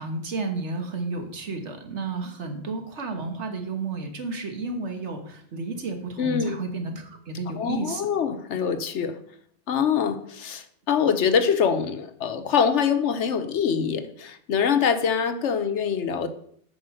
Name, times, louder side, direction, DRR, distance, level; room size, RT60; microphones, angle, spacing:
voice 1, 0.0-8.1, right 3 dB, 75° right, 4 dB, 1.7 m, -32 dB
voice 2, 6.2-6.6 7.6-9.2 9.7-16.3, left 7 dB, 80° left, 10 dB, 1.2 m, -24 dB
8.0 x 5.5 x 6.4 m, 0.65 s
omnidirectional pair, 1.2 m